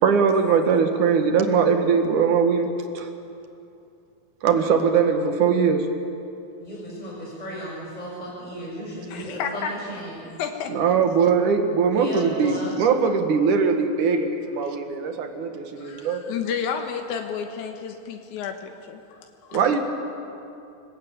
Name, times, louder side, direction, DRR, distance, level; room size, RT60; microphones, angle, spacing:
voice 1, 0.0-2.7 3.0-3.1 4.4-5.9 10.7-16.2 19.5-19.8, right 6 dB, 90° right, 5 dB, 3.2 m, -21 dB
voice 2, 6.6-10.3 11.9-12.8, equal, 10° left, -5 dB, 6.5 m, -34 dB
voice 3, 9.1-9.7 10.4-11.0 15.8-19.6, left 7 dB, 80° left, 4 dB, 2.8 m, -31 dB
28.5 x 20.0 x 8.7 m, 2.6 s
omnidirectional pair, 3.4 m